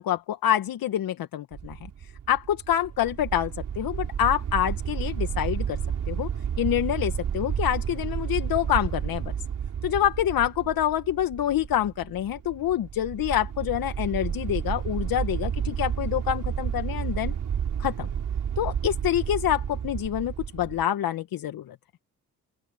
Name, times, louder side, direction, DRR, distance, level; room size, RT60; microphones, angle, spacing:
voice 1, 0.0-1.8 2.3-5.8 6.1-6.3 6.6-9.3 9.8-17.3 17.8-18.1 18.6-21.8, left 11 dB, 65° left, 1.9 m, -26 dB
sound 1, 1.5-20.8, right 8 dB, 55° right, 6.1 m, -31 dB
open air
supercardioid pair, 65°, 38 cm